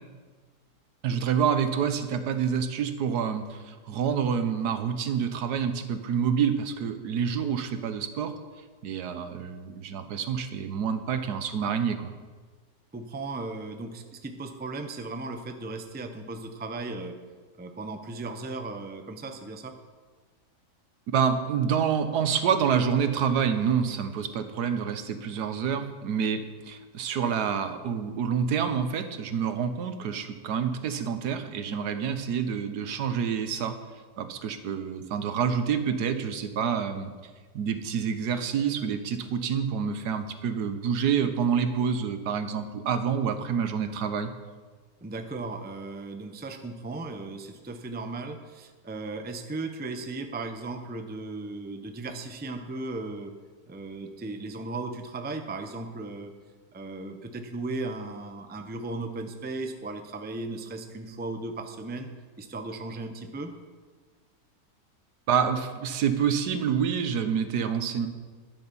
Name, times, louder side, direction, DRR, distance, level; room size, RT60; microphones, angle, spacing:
voice 1, 1.0-8.3 8.8-12.1 21.1-33.7 34.2-37.1 37.5-44.3 65.3-68.1, right 7 dB, 90° right, 9 dB, 1.5 m, -27 dB
voice 2, 12.9-17.1 17.6-19.7 45.0-53.3 53.7-56.3 56.7-62.1 62.4-63.5, right 3 dB, 15° right, 6 dB, 0.4 m, -36 dB
12.5 x 9.8 x 5.4 m, 1.4 s
omnidirectional pair, 1.7 m